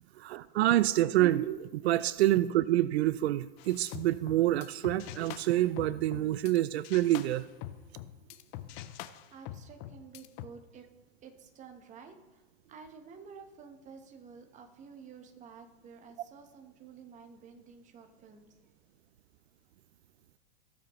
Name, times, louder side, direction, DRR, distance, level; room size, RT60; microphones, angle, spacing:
voice 1, 0.2-7.5, right 14 dB, 80° right, 16 dB, 0.5 m, -27 dB
sound 1, 3.6-6.6 6.8-10.5, left 13 dB, 35° left, 0.5 m, -45 dB
voice 2, 8.9-10.9 11.2-12.4 12.7-18.5, right 5 dB, 25° right, 5 dB, 1.1 m, -51 dB
18.5 x 7.3 x 3.1 m, 1.2 s
hypercardioid pair, 135°, 32 cm